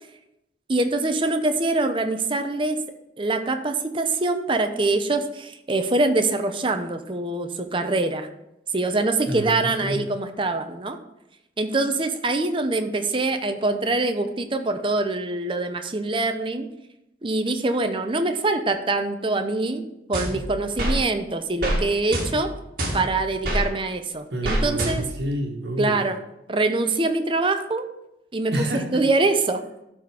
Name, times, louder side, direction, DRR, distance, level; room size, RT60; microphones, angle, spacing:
voice 1, 0.7-2.8 3.2-8.3 8.7-11.0 11.6-16.7 17.2-19.8 20.1-22.5 22.9-25.0 25.8-26.2 26.5-27.9 28.3-28.5 28.9-29.8, right 2 dB, 30° right, 7 dB, 0.7 m, -24 dB
voice 2, 9.3-10.0 24.3-26.0 28.5-29.0, right 1 dB, 70° right, 2 dB, 1.6 m, -28 dB
sound 1, 20.1-21.0 21.6-21.8 22.1-23.6 24.4-25.3, right 1 dB, 55° right, 1.9 m, -26 dB
12.5 x 4.2 x 4.9 m, 0.86 s
head